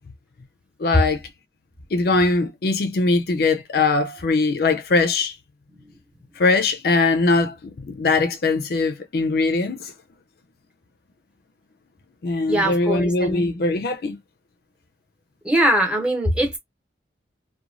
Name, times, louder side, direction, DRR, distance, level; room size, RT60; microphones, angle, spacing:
voice 1, 0.8-1.2 1.9-5.4 6.4-9.9 12.2-14.2, left 3 dB, 55° left, 0.4 m, -21 dB
voice 2, 12.5-13.5 15.4-16.6, right 1 dB, 5° right, 0.9 m, -21 dB
2.9 x 2.1 x 2.5 m
head